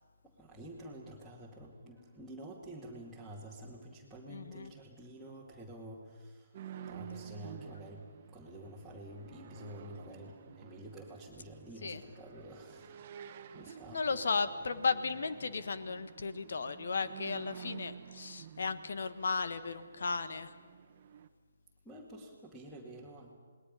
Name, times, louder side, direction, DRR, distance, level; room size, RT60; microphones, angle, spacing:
voice 1, 0.2-6.6 6.9-13.0 13.5-14.2 14.7-14.8 21.8-23.3, right 1 dB, ahead, -4 dB, 2.4 m, -49 dB
voice 2, 4.3-4.7 11.8-12.0 13.9-20.5, left 4 dB, 65° left, 12 dB, 1.3 m, -35 dB
sound 1, 6.5-21.3, right 8 dB, 40° right, 1.2 m, -51 dB
28.5 x 20.0 x 5.6 m, 1.5 s
figure-of-eight pair, 145°, 0 cm